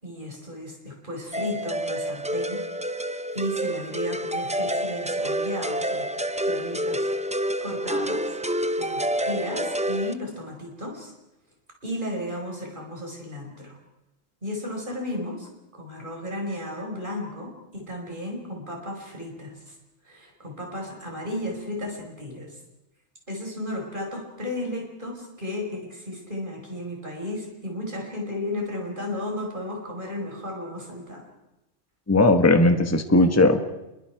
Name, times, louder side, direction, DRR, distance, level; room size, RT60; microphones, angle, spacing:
voice 1, 0.0-2.6 3.3-6.1 6.4-8.3 8.8-11.1 11.8-13.8 14.4-19.8 20.0-22.6 23.3-31.3, left 1 dB, 40° right, 1 dB, 5.3 m, -34 dB
sound 1, 1.3-10.1, right 1 dB, 10° right, 0.4 m, -28 dB
voice 2, 32.1-33.6, left 2 dB, 15° left, 7 dB, 1.2 m, -17 dB
27.5 x 22.5 x 4.7 m, 0.96 s
omnidirectional pair, 1.3 m